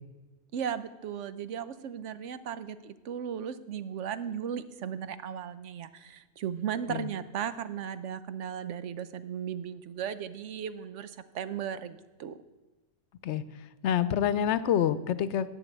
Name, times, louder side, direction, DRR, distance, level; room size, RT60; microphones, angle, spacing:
voice 1, 0.5-12.4, right 8 dB, 85° right, 12 dB, 1.0 m, -36 dB
voice 2, 13.8-15.5, left 9 dB, 75° left, 14 dB, 0.9 m, -27 dB
11.0 x 6.0 x 8.4 m, 1.2 s
omnidirectional pair, 1.2 m